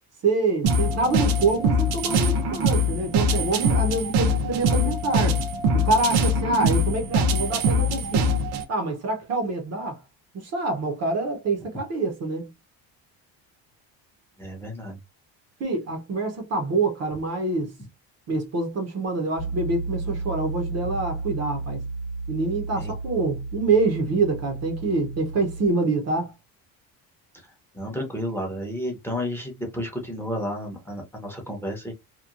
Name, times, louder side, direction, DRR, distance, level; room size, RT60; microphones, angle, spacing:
voice 1, 0.2-5.4 5.7-8.3 8.7-10.0 10.3-12.5 15.6-17.7 18.3-21.8 22.3-26.3, right 3 dB, 40° right, 0.7 m, -26 dB
sound 1, 0.6-8.6, equal, 90° right, 0.8 m, -23 dB
voice 2, 14.4-15.0 22.8-22.9 27.3-31.9, equal, 5° left, 0.7 m, -32 dB
Piano, 19.4-25.7, right 3 dB, 70° left, 0.8 m, -33 dB
2.9 x 2.2 x 2.3 m
cardioid pair, 150°, 41 cm